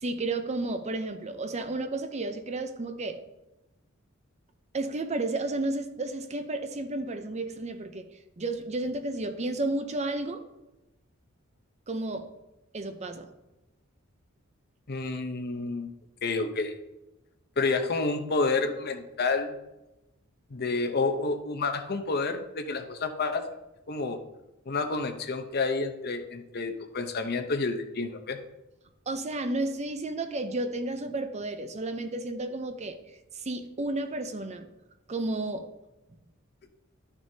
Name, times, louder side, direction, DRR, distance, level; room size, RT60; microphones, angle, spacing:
voice 1, 0.0-3.2 4.7-8.1 8.4-10.4 11.9-12.3 12.7-13.3 29.1-33.0 33.4-34.7 35.1-35.7, right 2 dB, 35° right, 8 dB, 0.6 m, -32 dB
voice 2, 14.9-15.9 16.2-16.8 17.6-19.6 20.5-23.5 23.9-24.2 24.7-28.4, left 3 dB, 50° left, 7 dB, 0.8 m, -29 dB
12.0 x 6.2 x 2.8 m, 0.98 s
head